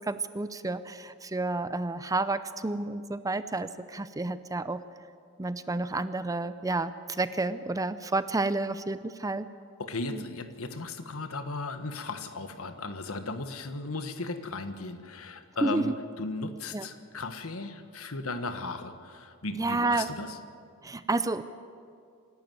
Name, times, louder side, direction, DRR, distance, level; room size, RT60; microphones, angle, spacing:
voice 1, 0.1-4.8 5.4-9.5 10.1-10.2 15.6-15.9 16.7-16.8 19.6-20.1 20.8-21.4, right 2 dB, 15° right, 13 dB, 0.5 m, -30 dB
voice 2, 9.8-20.4, left 3 dB, 70° left, 9 dB, 1.4 m, -36 dB
26.5 x 12.0 x 9.3 m, 2.3 s
head